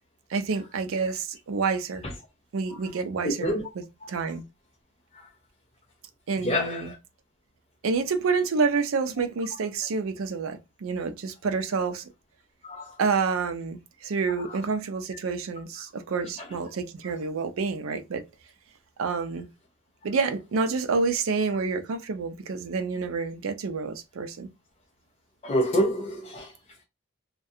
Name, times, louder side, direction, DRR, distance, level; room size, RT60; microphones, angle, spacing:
voice 1, 0.3-2.0 2.5-3.5 4.1-4.4 6.3-6.9 7.8-12.1 13.0-18.2 19.0-19.5 20.0-24.5, right 4 dB, 75° right, 0.4 m, -28 dB
voice 2, 3.2-3.6 5.1-5.3 6.4-7.0 12.6-12.9 14.4-14.6 25.4-26.5, equal, 30° left, 0.4 m, -27 dB
2.3 x 2.2 x 2.7 m
head